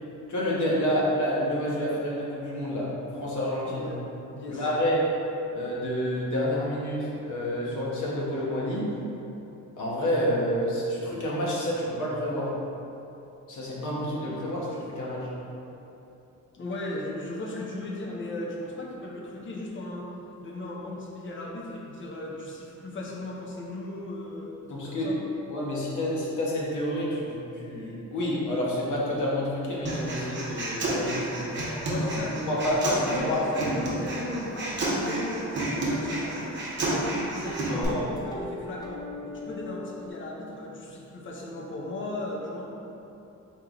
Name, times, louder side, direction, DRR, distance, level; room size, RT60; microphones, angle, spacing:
voice 1, 0.3-3.9 4.5-5.1 5.5-8.9 9.8-12.5 13.5-15.3 24.7-25.1 25.5-31.7 32.0-32.1 32.5-32.8 33.1-33.7 37.7-38.0, equal, 75° left, -5 dB, 1.0 m, -29 dB
voice 2, 3.7-4.0 4.3-4.7 16.5-20.1 20.4-25.2 31.8-42.7, left 1 dB, 40° left, -3 dB, 0.7 m, -36 dB
sound 1, 28.7-37.2 37.4-40.1, left 1 dB, 15° left, 0.4 m, -44 dB
Human voice, 29.8-37.8, right 1 dB, 35° right, 0.9 m, -30 dB
4.5 x 3.0 x 3.8 m, 2.9 s
wide cardioid pair, 155°, 31 cm